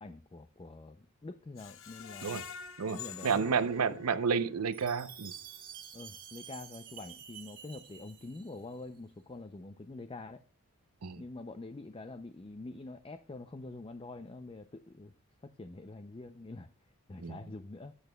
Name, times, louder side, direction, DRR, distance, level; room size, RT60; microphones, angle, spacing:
voice 1, 0.0-2.5 2.9-4.1 5.9-10.4 11.2-15.1 15.4-16.7 17.1-17.9, left 2 dB, 25° left, 0.4 m, -46 dB
Screech, 1.6-4.6 5.0-5.1 5.5-5.6, left 8 dB, 65° left, 0.8 m, -47 dB
voice 2, 2.8-5.3 11.0-11.2 17.2-17.4, right 6 dB, 85° right, 0.6 m, -31 dB
Chime, 4.7-8.9, right 8 dB, 40° right, 1.7 m, -50 dB
17.5 x 8.1 x 2.2 m
head